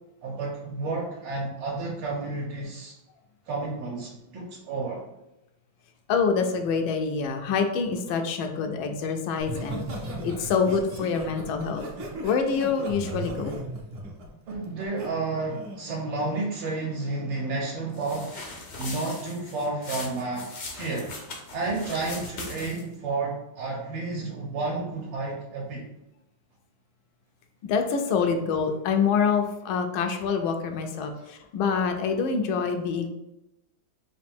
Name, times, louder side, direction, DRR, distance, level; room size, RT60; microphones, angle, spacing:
voice 1, 0.2-2.9 3.5-5.0 14.5-18.4 18.8-21.1 21.5-25.9, right 3 dB, 75° right, -3 dB, 1.4 m, -31 dB
voice 2, 6.1-11.8 12.2-13.6 27.6-33.1, left 5 dB, 85° left, 5 dB, 1.4 m, -26 dB
Laughter, 9.4-15.1 15.5-15.8, right 1 dB, 60° right, 0.7 m, -36 dB
sound 1, 17.9-22.9, left 3 dB, 70° left, 0.6 m, -39 dB
3.9 x 2.6 x 3.5 m, 0.90 s
omnidirectional pair, 2.1 m